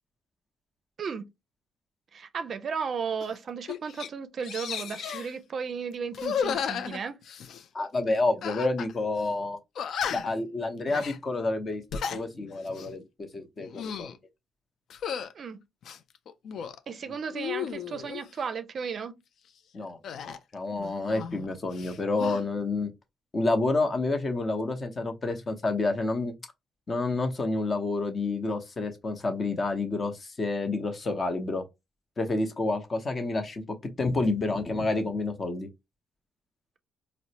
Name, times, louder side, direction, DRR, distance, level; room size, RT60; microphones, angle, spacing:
voice 1, 2.1-7.2 15.3-15.6 16.9-19.2, right 6 dB, 50° right, 0.4 m, -34 dB
sound 1, 3.2-3.4 3.7-4.1 4.4-5.3 6.1-7.7 8.4-8.9 9.2-9.3 9.8-10.4 10.9-11.2 11.7-12.2 12.7-12.9 13.6-14.2 14.9-15.3 15.8-16.8 17.3-18.2 20.0-21.5 21.7-22.4, left 7 dB, 65° left, 0.3 m, -34 dB
voice 2, 7.7-9.6 10.1-11.8 12.1-14.1 19.7-20.0 20.5-22.9 23.3-26.3 26.9-31.6 32.2-35.7, left 2 dB, 35° left, 0.8 m, -29 dB
4.0 x 2.0 x 2.7 m
cardioid pair, 90°, 0 cm